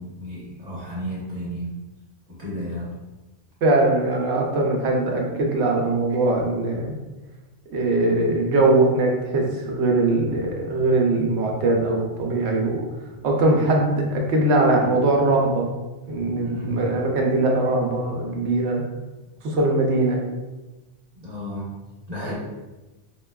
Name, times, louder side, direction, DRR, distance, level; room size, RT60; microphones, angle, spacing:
voice 1, 0.0-1.7 2.3-3.0 16.3-16.8 21.1-21.7 22.1-22.3, equal, 40° right, -6 dB, 0.9 m, -33 dB
voice 2, 3.6-7.0 7.7-12.8 13.2-15.7 16.1-18.8 19.4-20.2 22.2-22.3, right 2 dB, 70° right, 0 dB, 0.9 m, -21 dB
4.4 x 2.2 x 2.2 m, 1.1 s
omnidirectional pair, 1.2 m